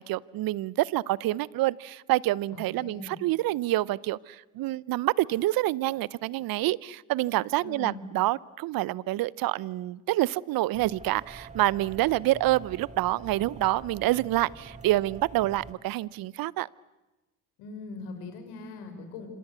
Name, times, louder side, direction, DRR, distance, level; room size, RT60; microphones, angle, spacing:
voice 1, 0.0-16.7, right 16 dB, 60° right, 0.8 m, -27 dB
voice 2, 2.5-3.2 7.6-8.0 17.6-19.3, left 3 dB, 75° left, 5.9 m, -41 dB
sound 1, 10.7-15.7, right 3 dB, 15° right, 2.6 m, -46 dB
27.0 x 26.0 x 8.0 m
hypercardioid pair, 70°, 40 cm